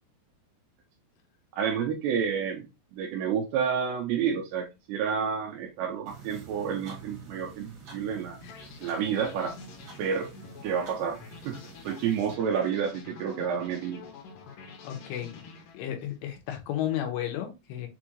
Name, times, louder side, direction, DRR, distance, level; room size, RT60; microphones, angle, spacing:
voice 1, 1.6-2.7 2.9-8.4 8.8-9.6 10.0-10.3 10.6-14.0, right 7 dB, 80° right, 2.7 m, -30 dB
sound 1, 6.1-12.3, right 5 dB, 60° right, 1.3 m, -48 dB
sound 2, 8.5-16.2, left 5 dB, 70° left, 2.1 m, -47 dB
voice 2, 14.8-15.5 15.7-17.9, left 11 dB, 90° left, 3.0 m, -33 dB
6.8 x 2.4 x 3.0 m
omnidirectional pair, 4.9 m